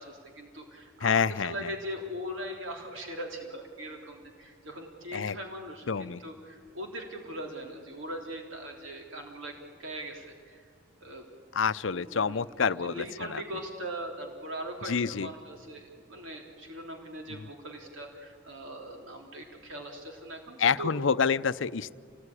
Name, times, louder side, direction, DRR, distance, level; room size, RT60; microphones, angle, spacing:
voice 1, 0.0-10.6 11.0-11.3 11.9-12.4 12.8-20.9, equal, 70° right, 2 dB, 3.5 m, -40 dB
voice 2, 1.0-1.7 5.1-5.4 5.9-6.2 11.5-13.4 14.9-15.3 20.6-21.9, left 6 dB, 70° left, 16 dB, 0.6 m, -28 dB
29.0 x 19.5 x 9.9 m, 2.2 s
head